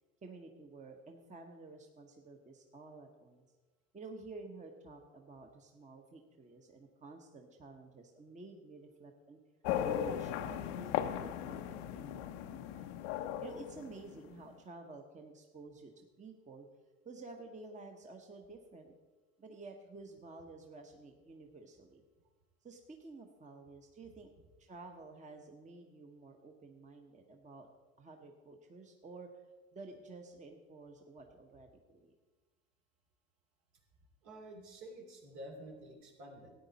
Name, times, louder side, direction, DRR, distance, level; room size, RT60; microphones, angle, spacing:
voice 1, 0.2-3.4 3.9-9.4 9.8-13.0 13.4-16.7 17.0-18.9 19.4-22.0 22.6-24.3 24.6-27.7 28.0-29.3 29.7-32.1, right 3 dB, 20° right, 4 dB, 1.1 m, -52 dB
sound 1, 9.6-14.5, left 10 dB, 80° left, 0.8 m, -37 dB
voice 2, 34.2-36.5, right 1 dB, 65° right, 1 dB, 3.0 m, -50 dB
13.0 x 9.1 x 4.1 m, 1.3 s
supercardioid pair, 95°, 32 cm